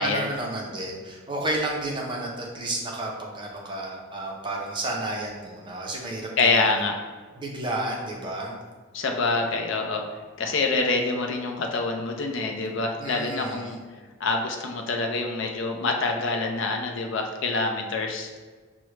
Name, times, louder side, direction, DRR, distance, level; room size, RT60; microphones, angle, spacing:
voice 1, 0.0-6.9 7.4-8.6 13.0-13.8, right 2 dB, 20° right, -1 dB, 0.5 m, -31 dB
voice 2, 6.4-7.0 8.9-10.0 10.4-13.8 14.2-18.3, left 3 dB, 60° left, 3 dB, 0.4 m, -26 dB
5.9 x 2.1 x 3.1 m, 1.5 s
head